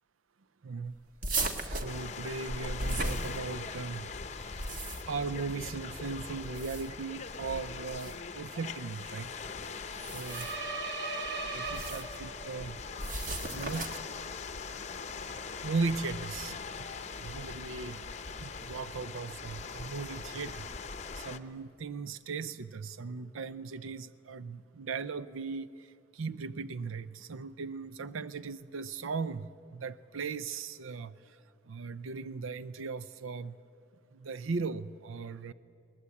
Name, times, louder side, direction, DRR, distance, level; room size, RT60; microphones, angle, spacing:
voice 1, 0.6-0.9 1.6-4.1 4.4-4.5 5.1-9.3 9.9-10.5 11.5-12.8 13.5-13.9 15.2-16.9 17.2-18.0 18.4-20.7 21.2-25.9 26.1-31.4 31.7-33.6 34.1-35.5, right 4 dB, 90° right, 15 dB, 0.5 m, -38 dB
sound 1, 1.2-3.8 4.4-5.3 6.4-7.1 7.9-8.2 9.9-10.7 11.6-12.1 13.0-14.2, right 2 dB, 45° right, 1.5 m, -36 dB
sound 2, 1.9-21.4, left 5 dB, 35° left, 0.8 m, -42 dB
sound 3, 10.2-12.6, right 3 dB, 65° right, 2.0 m, -37 dB
21.5 x 18.5 x 8.4 m, 2.5 s
head